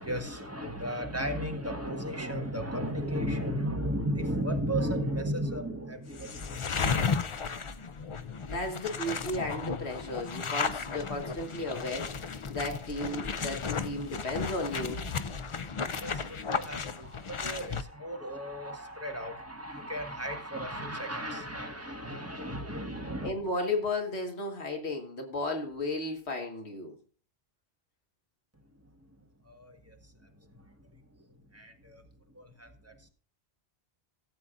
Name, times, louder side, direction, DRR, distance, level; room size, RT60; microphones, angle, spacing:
voice 1, 0.0-7.6 8.1-8.5 15.8-23.3 29.4-30.0 30.2-31.0 31.3-32.0 32.3-33.1, equal, 15° right, 1.5 m, -35 dB
sound 1, 6.1-17.8, left 5 dB, 40° left, 0.4 m, -34 dB
voice 2, 8.5-12.1 12.5-15.0 23.2-27.0, left 2 dB, 85° left, 1.9 m, -34 dB
17.0 x 8.3 x 2.5 m
omnidirectional pair, 1.1 m